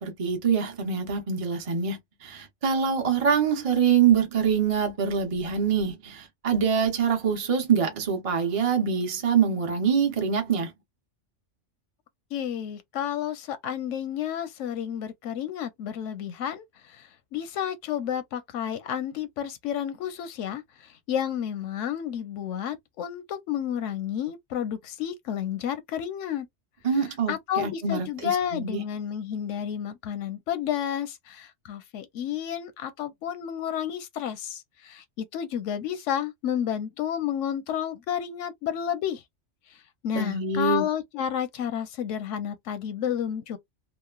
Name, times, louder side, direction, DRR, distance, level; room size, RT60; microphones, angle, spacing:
voice 1, 0.0-10.7 26.8-28.8 40.1-40.9, right 6 dB, 35° right, 0.6 m, -25 dB
voice 2, 12.3-26.5 27.3-39.2 40.0-43.6, left 9 dB, 85° left, 0.9 m, -31 dB
3.0 x 2.0 x 2.3 m
omnidirectional pair, 1.2 m